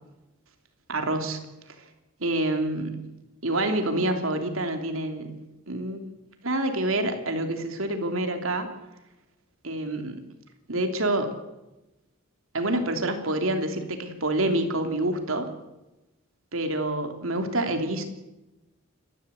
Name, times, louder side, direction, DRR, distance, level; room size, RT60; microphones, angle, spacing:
voice 1, 0.9-1.4 2.2-3.1 3.4-5.4 5.7-6.0 6.4-8.7 9.6-10.2 10.7-11.3 12.5-15.5 16.5-18.0, right 1 dB, 80° right, 6 dB, 3.0 m, -27 dB
29.0 x 12.5 x 8.2 m, 0.99 s
head